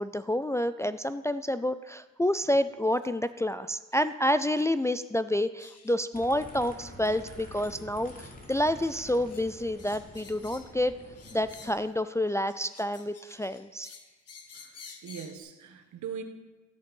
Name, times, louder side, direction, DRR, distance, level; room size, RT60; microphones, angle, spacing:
voice 1, 0.0-10.9 11.3-13.9, left 1 dB, 10° left, 11 dB, 0.3 m, -29 dB
sound 1, 3.9-4.1 4.5-4.7 5.0-5.1 5.6-6.0 6.4-6.6 7.0-7.2 7.5-7.7 8.0-8.3 8.8-9.4 9.8-10.8 11.1-11.9 12.3-15.4, left 5 dB, 55° left, 1.7 m, -51 dB
sound 2, 6.1-11.7, left 1 dB, 30° left, 3.1 m, -47 dB
voice 2, 14.5-16.2, right 7 dB, 70° right, 6 dB, 1.5 m, -41 dB
13.5 x 10.0 x 5.4 m, 1.2 s
cardioid pair, 90°, 30 cm